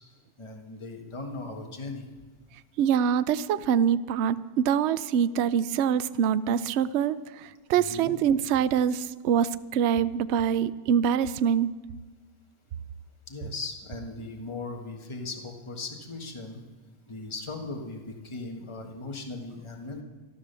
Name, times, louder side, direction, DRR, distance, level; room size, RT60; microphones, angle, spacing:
voice 1, 0.4-2.1 7.7-8.1 13.3-16.6 17.1-20.0, left 3 dB, 20° left, 2 dB, 1.5 m, -38 dB
voice 2, 2.8-11.7, right 8 dB, 65° right, 14 dB, 0.7 m, -25 dB
14.0 x 12.5 x 6.8 m, 1.4 s
omnidirectional pair, 1.7 m